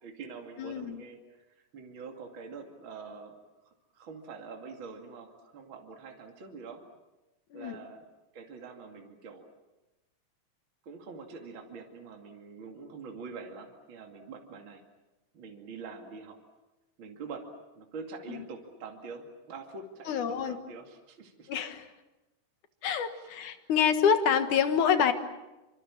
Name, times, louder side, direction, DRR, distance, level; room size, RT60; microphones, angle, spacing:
voice 1, 0.0-3.3 3.6-6.8 7.5-8.0 8.3-9.5 10.8-14.8 15.3-16.4 17.0-17.5 17.7-21.5 23.1-23.4, right 4 dB, 40° right, 2 dB, 3.0 m, -45 dB
voice 2, 0.6-1.0 7.5-7.8 18.3-18.4 20.1-20.6 21.5-21.9 22.8-25.1, left 7 dB, 75° left, 8 dB, 3.0 m, -27 dB
27.0 x 26.0 x 7.4 m, 1.0 s
omnidirectional pair, 3.7 m